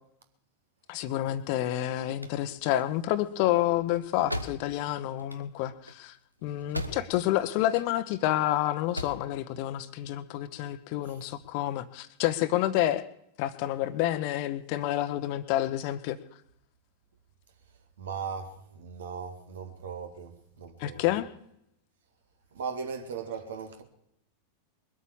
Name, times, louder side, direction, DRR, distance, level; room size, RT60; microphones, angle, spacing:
voice 1, 0.9-6.2 6.4-13.1 13.4-16.2 20.8-21.3, left 13 dB, 45° left, 1.0 m, -29 dB
sound 1, 2.0-7.4 7.6-8.4 8.7-9.3, equal, 90° right, 1.0 m, -39 dB
voice 2, 6.6-7.1 11.0-11.2 18.0-21.0 22.5-23.8, right 6 dB, 65° right, 2.0 m, -38 dB
21.5 x 8.5 x 7.2 m
figure-of-eight pair, 90°, 0 cm